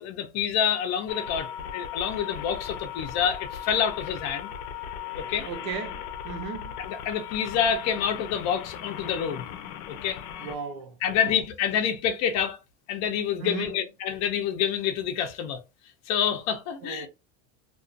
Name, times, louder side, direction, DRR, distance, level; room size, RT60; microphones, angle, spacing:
voice 1, 0.0-4.5 5.2-5.5 6.8-9.5 9.9-10.2 11.0-12.6 12.9-15.6 16.1-17.1, left 8 dB, 40° left, 0.5 m, -27 dB
sound 1, 1.1-10.6, left 9 dB, 80° left, 0.6 m, -38 dB
voice 2, 5.4-6.7 10.4-11.3 13.4-13.8 16.8-17.1, right 5 dB, 75° right, 0.8 m, -36 dB
2.4 x 2.3 x 2.4 m
supercardioid pair, 145°, 43 cm